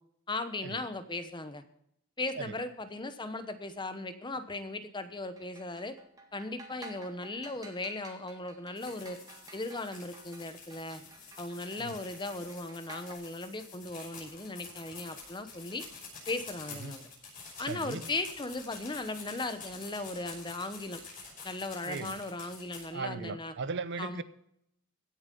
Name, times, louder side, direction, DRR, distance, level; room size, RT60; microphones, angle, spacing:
voice 1, 0.3-1.6 2.2-6.0 6.3-9.2 9.5-11.0 11.4-15.8 16.3-17.0 17.6-21.0 21.4-23.5 24.0-24.2, left 2 dB, 20° left, 0.9 m, -37 dB
sound 1, 5.2-13.1, right 2 dB, 15° right, 1.8 m, -52 dB
sound 2, 8.8-22.8, left 5 dB, 40° left, 5.9 m, -48 dB
voice 2, 17.6-18.0 21.8-22.2 22.9-24.2, right 4 dB, 55° right, 0.6 m, -38 dB
16.0 x 7.3 x 5.3 m
head